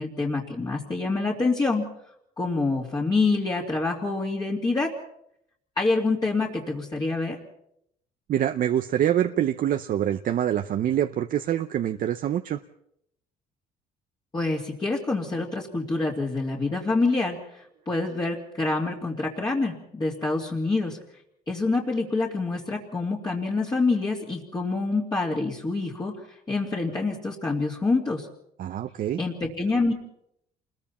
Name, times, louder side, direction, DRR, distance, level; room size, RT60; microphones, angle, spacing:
voice 1, 0.0-1.9 2.4-4.9 5.8-7.4 14.3-21.0 21.5-28.3 29.2-29.9, left 3 dB, 25° left, -4 dB, 2.7 m, -26 dB
voice 2, 8.3-12.6 28.6-29.2, right 10 dB, 55° right, 8 dB, 0.8 m, -25 dB
28.0 x 21.5 x 4.3 m, 0.75 s
cardioid pair, 110°, 17 cm